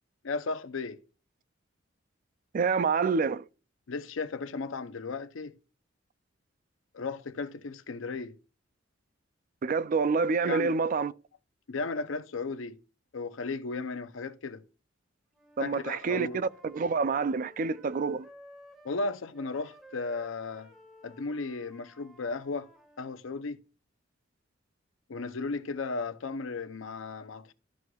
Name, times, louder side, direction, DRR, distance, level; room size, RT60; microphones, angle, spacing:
voice 1, 0.2-1.0 3.9-5.6 6.9-8.4 10.4-10.7 11.7-12.8 13.1-14.6 15.6-16.4 18.8-20.7 21.0-22.7 23.0-23.6 25.1-27.5, left 3 dB, 90° left, 0.6 m, -35 dB
voice 2, 2.5-3.4 9.6-11.1 15.6-18.3, right 5 dB, 45° right, 0.3 m, -27 dB
Wind instrument woodwind instrument, 15.3-19.0 19.3-23.2, right 1 dB, ahead, 1.6 m, -55 dB
12.5 x 6.2 x 2.3 m
head